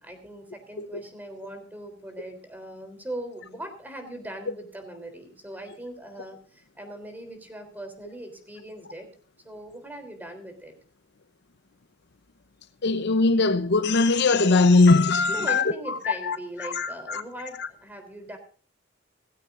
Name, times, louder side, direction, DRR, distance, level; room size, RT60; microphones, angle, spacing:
voice 1, 0.0-9.1 9.4-10.7 15.3-18.4, right 1 dB, 10° right, 3.5 m, -40 dB
voice 2, 12.8-17.2, left 3 dB, 55° left, 0.7 m, -21 dB
18.0 x 15.5 x 2.6 m
head